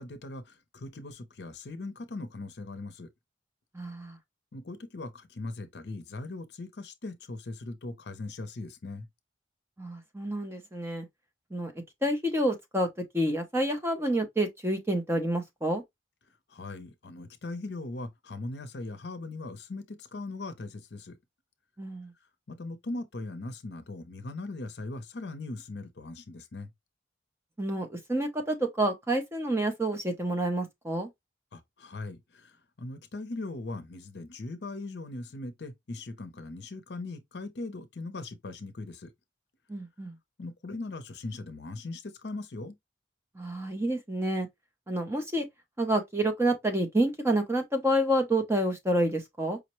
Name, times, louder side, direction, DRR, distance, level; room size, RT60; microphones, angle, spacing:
voice 1, 0.0-3.1 4.5-9.1 16.5-21.2 22.5-26.7 31.5-39.1 40.4-42.8, left 2 dB, 60° left, 0.6 m, -39 dB
voice 2, 3.7-4.2 9.8-11.1 11.5-11.7 12.0-12.9 13.1-15.8 21.8-22.1 27.6-31.1 39.7-40.1 43.4-44.5 44.9-45.5 45.8-49.6, right 1 dB, 15° right, 0.6 m, -28 dB
5.0 x 2.1 x 3.0 m
head